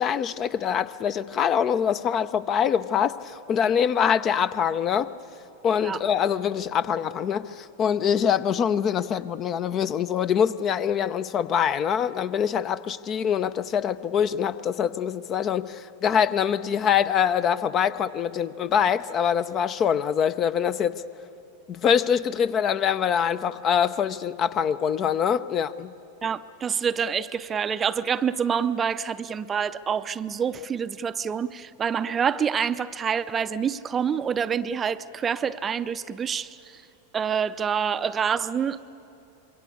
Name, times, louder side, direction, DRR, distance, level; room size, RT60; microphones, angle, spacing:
voice 1, 0.0-5.1 5.6-21.0 21.7-25.9, left 8 dB, 30° left, 0.6 m, -24 dB
voice 2, 26.2-36.8 37.1-38.8, right 7 dB, 20° right, 0.6 m, -27 dB
26.0 x 22.5 x 8.5 m
figure-of-eight pair, 90°, 0 cm